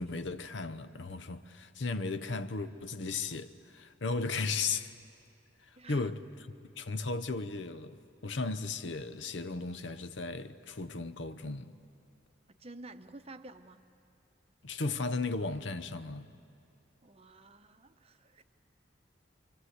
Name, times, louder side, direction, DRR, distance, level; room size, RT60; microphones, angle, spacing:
voice 1, 0.0-4.9 5.6-6.2 6.8-11.7 14.6-16.3, left 3 dB, 70° left, 0.8 m, -36 dB
voice 2, 5.8-6.1 12.5-13.8 17.0-18.4, right 2 dB, 30° right, 0.8 m, -50 dB
27.5 x 24.5 x 8.1 m
head